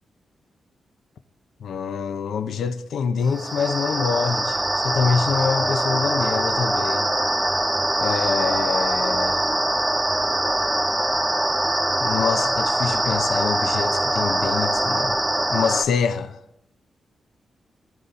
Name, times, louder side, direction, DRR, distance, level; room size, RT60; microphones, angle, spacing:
voice 1, 1.6-7.1 8.0-9.4 12.0-15.2 15.5-16.4, left 6 dB, 85° left, 0.7 m, -25 dB
sound 1, 3.3-15.9, right 1 dB, 10° right, 0.8 m, -23 dB
19.0 x 12.0 x 4.1 m
wide cardioid pair, 120°, 0 cm